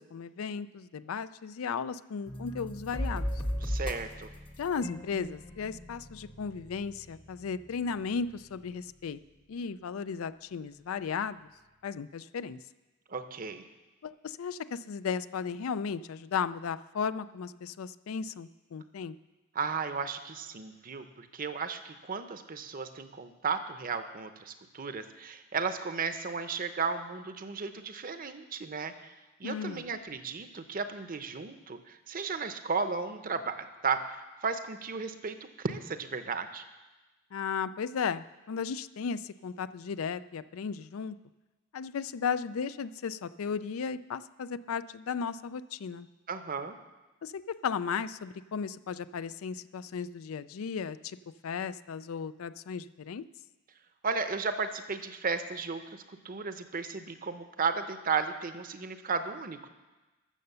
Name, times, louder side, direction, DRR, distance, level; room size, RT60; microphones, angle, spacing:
voice 1, 0.0-3.3 4.6-9.2 9.5-11.4 11.8-12.6 14.0-19.2 29.4-29.9 37.3-41.2 41.7-46.1 47.2-51.2 51.4-53.2, left 6 dB, 80° left, 14 dB, 0.4 m, -35 dB
sound 1, 2.3-9.0, equal, 25° left, 0.8 m, -38 dB
voice 2, 3.6-4.3 13.1-13.6 19.5-29.1 29.4-34.2 34.4-36.6 46.3-46.8 54.0-59.7, right 5 dB, 40° right, 9 dB, 0.7 m, -34 dB
13.5 x 6.7 x 6.8 m, 1.1 s
head